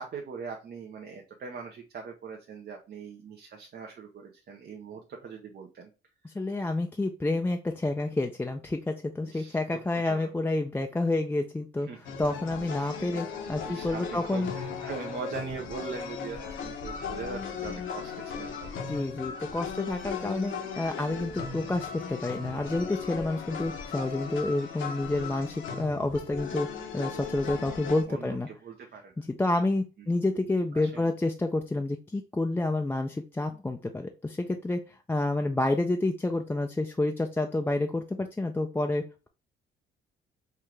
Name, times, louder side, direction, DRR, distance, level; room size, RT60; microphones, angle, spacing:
voice 1, 0.0-5.9 6.2-6.3 9.2-10.3 11.9-12.0 13.6-19.0 28.1-29.2 30.7-31.1, right 5 dB, 55° right, 2 dB, 0.7 m, -41 dB
voice 2, 6.2-11.9 12.2-14.5 18.9-26.7 26.9-28.5 29.2-39.3, left 2 dB, 10° left, 4 dB, 0.4 m, -29 dB
sound 1, 12.0-28.0, left 6 dB, 75° left, 1.0 m, -37 dB
4.5 x 2.4 x 3.2 m, 0.32 s
cardioid pair, 90°, 20 cm